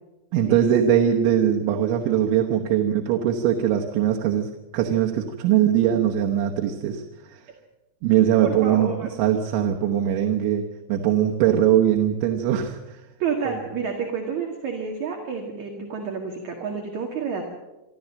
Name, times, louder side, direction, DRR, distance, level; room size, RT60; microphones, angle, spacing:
voice 1, 0.3-7.4 8.0-8.9 9.2-13.0 13.5-13.6, right 10 dB, 85° right, 2 dB, 3.6 m, -21 dB
voice 2, 8.4-9.1 13.2-17.5, right 6 dB, 50° right, 2 dB, 2.7 m, -29 dB
27.0 x 13.0 x 7.6 m, 1.0 s
omnidirectional pair, 5.2 m